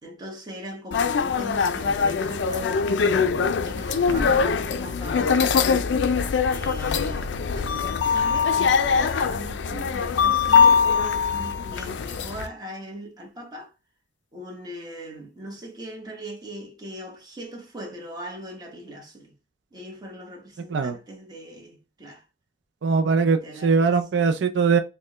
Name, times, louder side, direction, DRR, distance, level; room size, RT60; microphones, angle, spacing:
voice 1, 0.0-5.8 6.5-13.7 14.3-19.3 19.7-22.2 23.2-23.8, right 1 dB, 25° right, 1.0 m, -40 dB
sound 1, 0.9-12.5, left 6 dB, 80° left, 0.4 m, -22 dB
Slam, 0.9-1.0 1.6-2.0 4.1-6.0 6.2-6.3, right 1 dB, 5° right, 1.8 m, -37 dB
voice 2, 22.8-24.8, right 5 dB, 80° right, 0.4 m, -21 dB
4.3 x 2.2 x 3.0 m
head